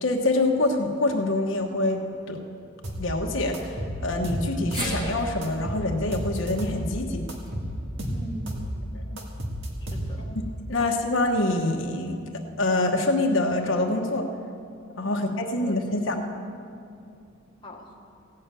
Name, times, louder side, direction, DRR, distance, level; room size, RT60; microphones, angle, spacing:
voice 1, 0.0-2.0 2.3-2.4 3.0-7.3 9.1-9.2 10.3-10.4 10.7-14.3 15.0-16.2, left 2 dB, 65° left, 2 dB, 1.2 m, -25 dB
sound 1, 2.8-3.1 3.5-5.0 5.4-6.8 7.3-8.7 9.2-10.4, equal, 65° right, 1.8 m, -32 dB
sound 2, 4.7-9.0 9.3-9.4 10.6-10.7, right 1 dB, 20° right, 3.3 m, -39 dB
voice 2, 8.1-8.9 9.8-10.3 10.8-10.9 15.1-15.4 15.6-15.7 17.6-17.9, equal, 25° left, -2 dB, 1.3 m, -41 dB
16.0 x 6.8 x 9.0 m, 2.5 s
head